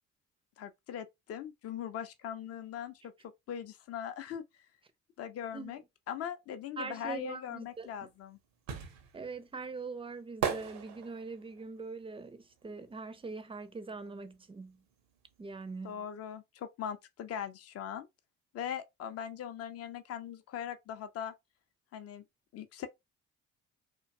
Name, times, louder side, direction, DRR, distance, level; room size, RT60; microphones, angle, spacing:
voice 1, 0.6-3.1 3.5-4.4 5.2-5.8 6.1-8.4 15.8-18.1 18.5-21.3 21.9-22.2 22.5-22.9, left 9 dB, 40° left, 0.5 m, -40 dB
voice 2, 6.8-7.9 9.1-14.8 15.4-16.1, right 4 dB, 15° right, 0.4 m, -42 dB
sound 1, 7.8-13.7 13.9-15.5 15.8-15.9, right 8 dB, 75° right, 0.7 m, -39 dB
2.5 x 2.2 x 2.5 m
hypercardioid pair, 50°, 36 cm